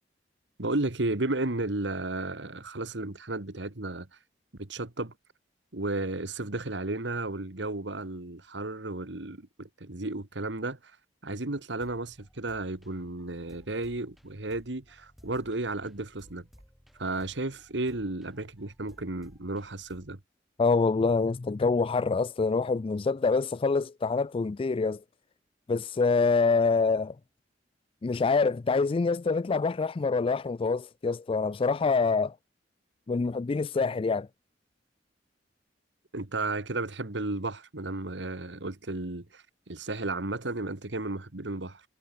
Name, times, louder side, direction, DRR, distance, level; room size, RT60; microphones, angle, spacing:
voice 1, 0.6-4.1 4.6-5.1 5.7-11.0 11.2-16.5 17.0-20.2 36.1-41.8, right 2 dB, 70° right, 1.8 m, -33 dB
sound 1, 11.8-20.2, equal, ahead, 5.3 m, -58 dB
voice 2, 20.6-25.0 25.7-27.2 28.0-32.4 33.1-34.3, left 4 dB, 30° left, 0.3 m, -26 dB
head